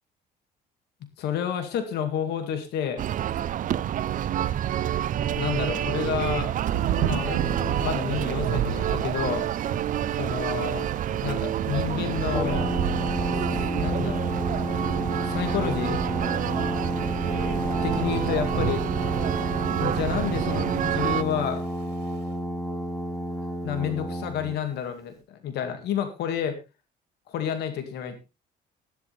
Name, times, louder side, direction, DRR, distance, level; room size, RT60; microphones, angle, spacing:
voice 1, 1.2-3.0 5.4-6.5 7.0-9.5 10.2-10.9 11.2-12.7 13.3-13.4 13.7-14.2 15.2-16.0 17.8-18.8 19.8-21.6 23.6-26.6 27.3-28.3, left 8 dB, 75° left, 8 dB, 2.2 m, -30 dB
sound 1, 3.0-21.2, right 11 dB, 50° right, 0.7 m, -28 dB
Thunder / Rain, 6.6-22.2, right 9 dB, 85° right, 2.5 m, -34 dB
Brass instrument, 12.3-24.6, right 1 dB, 20° left, 6.9 m, -30 dB
15.0 x 12.0 x 3.4 m, 0.28 s
cardioid pair, 110°, 17 cm